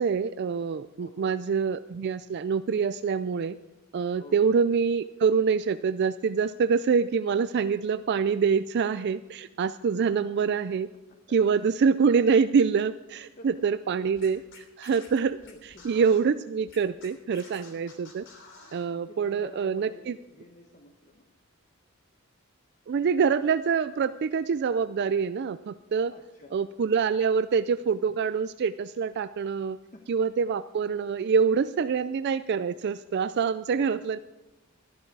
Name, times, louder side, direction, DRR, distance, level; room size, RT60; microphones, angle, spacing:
voice 1, 0.0-3.6 3.9-10.9 11.3-15.4 15.8-18.3 18.7-20.2 22.9-26.1 26.5-29.8 30.1-34.2, right 6 dB, 50° right, 13 dB, 0.3 m, -25 dB
voice 2, 1.0-1.4 4.2-4.4 10.1-10.4 11.1-11.7 12.2-12.3 13.4-13.5 14.3-14.4 14.8-14.9 15.4-16.0 18.9-21.3 26.1-26.7 29.9-30.3 31.0-31.2 33.7-34.1, left 1 dB, 40° left, 4 dB, 1.1 m, -51 dB
Scratching (performance technique), 14.1-16.2 16.7-18.9, left 4 dB, 60° left, 3.1 m, -50 dB
13.5 x 12.0 x 4.7 m, 1.0 s
head